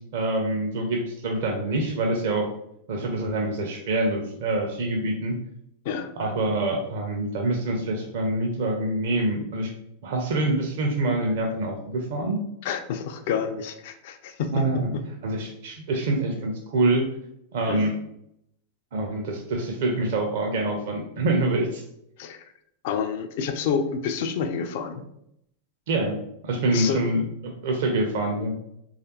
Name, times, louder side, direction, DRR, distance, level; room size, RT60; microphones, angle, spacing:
voice 1, 0.1-2.5 2.9-5.4 6.2-9.7 10.0-12.4 14.5-14.9 15.2-17.1 17.5-17.9 18.9-21.8 25.9-26.2 26.4-27.2 27.4-28.5, right 2 dB, 55° right, 1 dB, 0.5 m, -25 dB
voice 2, 5.8-6.4 12.6-15.0 17.7-17.9 22.2-22.5 22.8-25.0 26.7-27.0, left 6 dB, 50° left, 8 dB, 0.3 m, -29 dB
3.2 x 2.4 x 2.8 m, 0.76 s
figure-of-eight pair, 90°, 0 cm